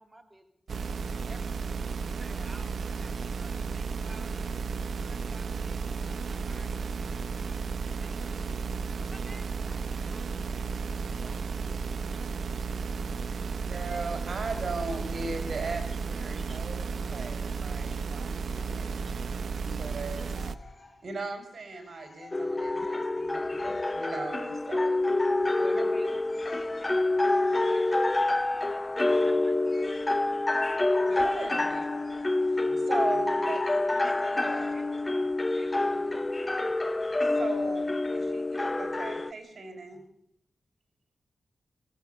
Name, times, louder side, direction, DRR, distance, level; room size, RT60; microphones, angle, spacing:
voice 1, 0.0-4.5 4.8-10.3 16.4-16.6 17.9-18.0 23.8-23.9 25.6-31.4 34.0-34.9 35.1-36.3, right 1 dB, 15° right, 3 dB, 2.7 m, -52 dB
sound 1, 0.7-20.5, right 5 dB, 85° right, 1.0 m, -33 dB
voice 2, 9.0-11.8 14.0-14.5 14.8-15.0 18.5-19.0 33.0-33.2 33.5-33.9 34.8-35.2, right 2 dB, 30° right, 2 dB, 2.4 m, -54 dB
voice 3, 13.6-20.3 21.0-25.2 31.1-31.9 32.4-34.7 37.2-40.0, right 3 dB, 60° right, 7 dB, 4.7 m, -39 dB
sound 2, 20.2-33.2, left 3 dB, 45° left, 6.3 m, -54 dB
sound 3, 22.3-39.3, left 2 dB, 20° left, 0.9 m, -27 dB
23.5 x 17.0 x 8.0 m, 0.72 s
wide cardioid pair, 140°, 0 cm